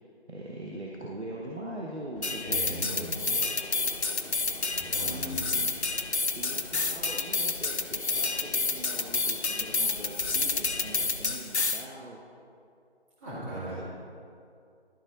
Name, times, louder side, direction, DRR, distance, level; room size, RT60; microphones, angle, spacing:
voice 1, 0.3-3.4 5.0-5.7 6.3-12.2 13.8-13.9, right 1 dB, 85° right, -3 dB, 1.1 m, -41 dB
sound 1, 2.1-11.3, equal, 60° left, 1.1 m, -46 dB
sound 2, 2.2-11.8, left 4 dB, 90° left, 0.7 m, -29 dB
voice 2, 2.4-3.1 4.7-5.4 13.2-13.8, right 1 dB, 15° right, -12 dB, 1.8 m, -38 dB
12.0 x 4.3 x 3.9 m, 2.4 s
figure-of-eight pair, 160°, 32 cm